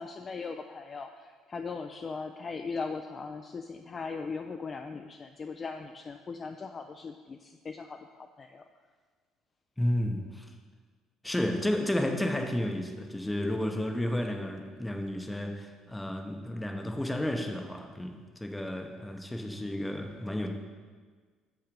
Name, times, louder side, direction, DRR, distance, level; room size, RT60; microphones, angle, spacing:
voice 1, 0.0-8.6, left 4 dB, 25° left, 5 dB, 0.3 m, -39 dB
voice 2, 9.8-10.5 11.2-20.5, left 1 dB, 5° left, 4 dB, 0.7 m, -32 dB
7.3 x 5.7 x 5.2 m, 1.5 s
cardioid pair, 145°, 0 cm